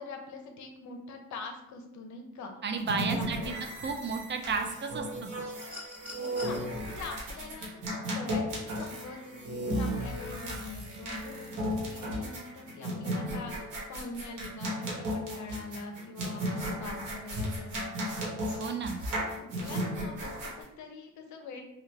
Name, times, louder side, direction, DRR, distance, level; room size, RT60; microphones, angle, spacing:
voice 1, 0.0-2.5 2.9-3.6 6.0-18.2 19.1-21.6, left 3 dB, 70° left, 4 dB, 0.7 m, -44 dB
voice 2, 2.6-3.5 3.8-5.3 18.6-19.0, right 5 dB, 40° right, 5 dB, 0.4 m, -32 dB
sound 1, 2.8-20.6, equal, 85° right, 1.2 m, -35 dB
sound 2, 5.5-6.6 8.1-8.2, left 2 dB, 5° right, 1.1 m, -45 dB
3.2 x 2.2 x 3.3 m, 0.82 s
cardioid pair, 90°, 30 cm